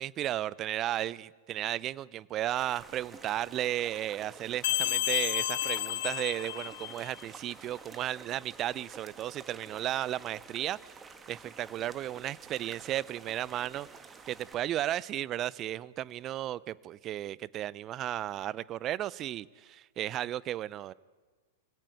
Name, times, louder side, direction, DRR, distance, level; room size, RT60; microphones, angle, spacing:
voice 1, 0.0-11.0 11.3-13.9 14.3-20.9, right 13 dB, 35° right, 0.6 m, -34 dB
sound 1, 2.5-14.5, right 4 dB, 15° right, 1.8 m, -50 dB
sound 2, 4.6-7.2, left 15 dB, 60° left, 0.8 m, -31 dB
25.0 x 16.5 x 9.4 m
hypercardioid pair, 105°, 0 cm